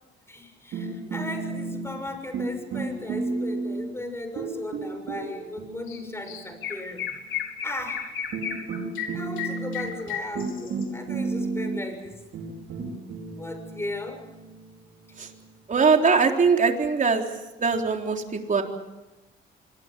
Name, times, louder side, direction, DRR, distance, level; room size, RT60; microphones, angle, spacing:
voice 1, 0.3-7.1 7.6-8.1 9.1-12.2 13.4-14.2, left 1 dB, 10° left, 6 dB, 6.8 m, -36 dB
sound 1, 0.7-2.1 2.3-4.0 4.4-6.8 7.8-7.9 8.3-15.8, right 3 dB, 75° right, 5.4 m, -33 dB
Chirp tweet, 5.9-6.0 6.3-10.8, left 8 dB, 75° left, 4.3 m, -33 dB
voice 2, 15.7-17.2 17.6-18.6, right 5 dB, 40° right, 3 dB, 3.8 m, -21 dB
25.0 x 21.5 x 7.6 m, 1.1 s
cardioid pair, 90°, 20 cm